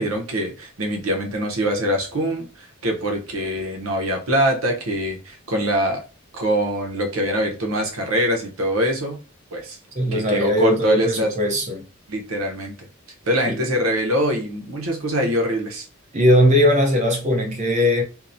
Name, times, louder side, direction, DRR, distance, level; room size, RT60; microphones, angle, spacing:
voice 1, 0.0-6.0 6.3-9.2 9.5-9.8 10.1-11.3 12.1-12.9 13.3-15.9, equal, 80° right, 0.7 m, -23 dB
voice 2, 9.9-11.8 13.5-13.6 16.1-18.0, equal, 35° right, 0.6 m, -19 dB
2.8 x 2.0 x 2.5 m
head